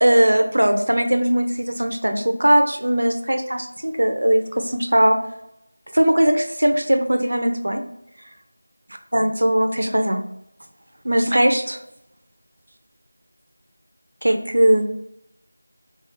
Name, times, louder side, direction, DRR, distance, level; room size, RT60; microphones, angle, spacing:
voice 1, 0.0-5.2 5.9-7.8 9.1-10.2 11.0-11.8 14.2-14.9, right 1 dB, 75° right, 6 dB, 0.4 m, -19 dB
2.9 x 2.4 x 2.9 m, 0.80 s
figure-of-eight pair, 180°, 0 cm